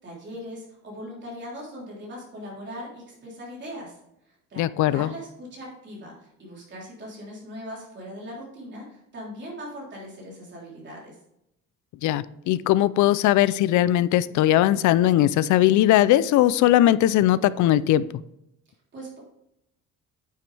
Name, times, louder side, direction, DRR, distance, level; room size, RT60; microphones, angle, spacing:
voice 1, 0.0-4.0 4.3-11.2 18.9-19.2, equal, 35° right, -4 dB, 3.6 m, -40 dB
voice 2, 4.6-5.1 12.0-18.1, left 13 dB, 75° left, 18 dB, 0.5 m, -19 dB
9.3 x 7.5 x 3.4 m, 0.82 s
cardioid pair, 160°, 31 cm